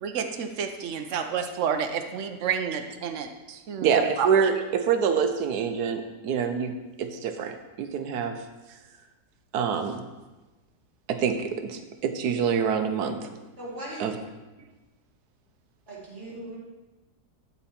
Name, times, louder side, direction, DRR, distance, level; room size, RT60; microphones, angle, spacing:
voice 1, 0.0-4.3, right 7 dB, 60° right, 7 dB, 0.9 m, -30 dB
voice 2, 3.8-6.7 7.0-8.4 9.5-10.0 11.1-13.3 14.0-14.2, right 6 dB, 75° right, 7 dB, 1.2 m, -26 dB
voice 3, 13.6-14.0 15.9-16.6, right 1 dB, 40° right, -6 dB, 2.9 m, -38 dB
12.0 x 4.4 x 4.3 m, 1.2 s
omnidirectional pair, 1.7 m